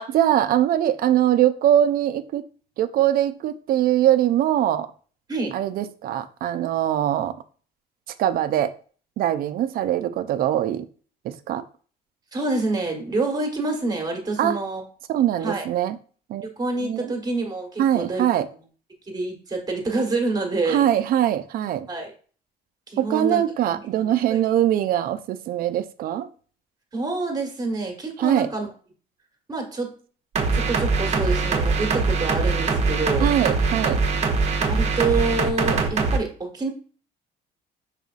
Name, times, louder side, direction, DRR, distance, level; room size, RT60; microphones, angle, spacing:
voice 1, 0.1-2.4 2.8-4.9 5.5-7.4 8.2-8.7 9.2-10.9 11.2-11.6 14.4-14.6 15.1-16.0 16.3-16.5 16.8-17.1 17.8-18.5 20.7-21.9 23.0-26.3 28.2-28.5 33.2-34.0, right 11 dB, 60° right, 0.5 m, -22 dB
voice 2, 12.3-14.8 15.4-15.6 16.4-18.2 19.1-20.9 21.9-22.1 22.9-23.4 23.7-24.4 26.9-28.7 29.5-30.0 30.5-33.3 34.6-36.7, right 3 dB, 25° right, 1.2 m, -27 dB
sound 1, 30.3-36.2, right 4 dB, 40° right, 0.8 m, -22 dB
5.4 x 4.1 x 2.4 m
cardioid pair, 110°, 17 cm